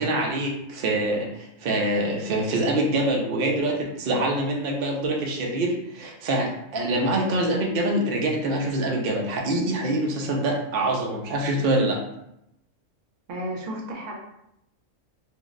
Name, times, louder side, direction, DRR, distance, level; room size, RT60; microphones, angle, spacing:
voice 1, 0.0-12.0, right 1 dB, 60° right, 0 dB, 0.7 m, -25 dB
voice 2, 13.3-14.2, right 1 dB, 75° right, -1 dB, 1.0 m, -33 dB
2.6 x 2.0 x 3.6 m, 0.80 s
omnidirectional pair, 1.3 m